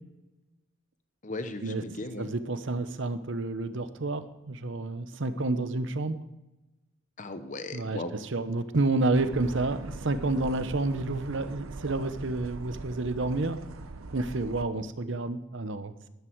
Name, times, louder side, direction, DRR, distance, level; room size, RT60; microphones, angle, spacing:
voice 1, 1.2-2.3 7.2-8.1, left 2 dB, 40° left, 9 dB, 0.9 m, -37 dB
voice 2, 2.2-6.2 7.7-13.6 14.1-16.1, right 2 dB, 60° right, 12 dB, 0.8 m, -30 dB
sound 1, 9.1-14.6, right 3 dB, 90° right, 0.8 m, -42 dB
12.5 x 11.5 x 4.6 m, 1.0 s
head